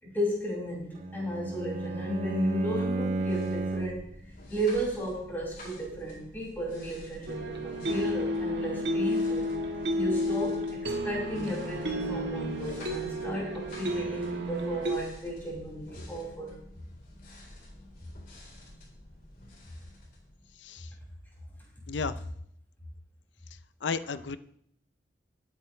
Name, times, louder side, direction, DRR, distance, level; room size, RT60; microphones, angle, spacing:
voice 1, 0.0-4.0 4.5-9.5 9.9-16.5, right 1 dB, 10° left, -5 dB, 6.3 m, -34 dB
Bowed string instrument, 0.9-4.1, right 2 dB, 40° right, 0.7 m, -32 dB
sound 1, 3.0-20.8, left 1 dB, 55° left, 4.1 m, -50 dB
sound 2, 7.3-15.0, equal, 70° right, 1.6 m, -31 dB
voice 2, 20.6-20.9 21.9-22.2 23.8-24.4, left 5 dB, 90° left, 13 dB, 0.6 m, -33 dB
20.0 x 9.3 x 3.3 m, 0.71 s
head